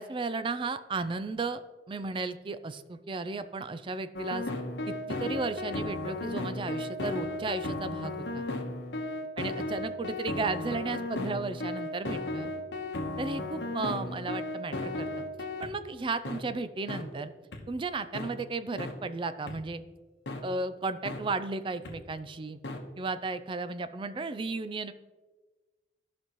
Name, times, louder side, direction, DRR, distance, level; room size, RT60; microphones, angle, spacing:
voice 1, 0.0-1.6 1.9-4.5 4.9-8.5 9.4-12.5 13.2-15.2 15.6-17.3 17.7-19.8 20.4-22.6 23.0-24.9, right 3 dB, 30° right, 12 dB, 0.4 m, -34 dB
sound 1, 4.1-15.7 16.2-16.4 16.9-17.0 17.5-17.6 18.1-18.3 18.8-18.9 19.5-19.6 20.3-20.4 21.0-21.2 21.8-21.9 22.6-22.8, left 2 dB, 80° left, 1.1 m, -35 dB
15.0 x 5.2 x 3.0 m, 1.3 s
head